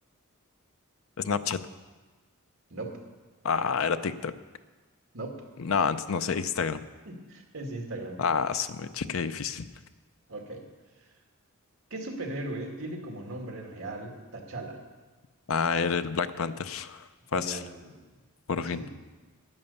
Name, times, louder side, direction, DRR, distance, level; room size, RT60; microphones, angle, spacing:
voice 1, 1.2-1.6 3.4-4.3 5.6-6.8 8.2-9.7 15.5-17.0 17.3-17.6 18.5-18.8, left 5 dB, 65° left, 11 dB, 0.6 m, -28 dB
voice 2, 7.1-8.2 10.3-10.6 11.9-14.8 17.3-18.1 18.6-18.9, right 2 dB, 70° right, 2 dB, 2.0 m, -38 dB
11.0 x 9.6 x 7.0 m, 1.3 s
head